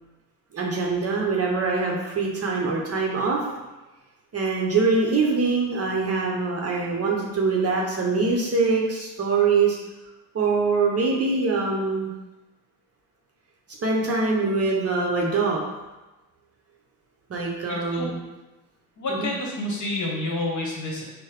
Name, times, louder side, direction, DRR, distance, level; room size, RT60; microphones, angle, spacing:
voice 1, 0.5-3.4 4.3-9.8 10.3-12.1 13.8-15.6 17.3-18.2 19.1-19.3, right 4 dB, 30° right, -2 dB, 0.8 m, -23 dB
voice 2, 17.7-18.1 19.0-21.0, left 2 dB, 40° left, -2 dB, 1.1 m, -29 dB
4.5 x 2.1 x 3.0 m, 1.1 s
hypercardioid pair, 60°, 45 cm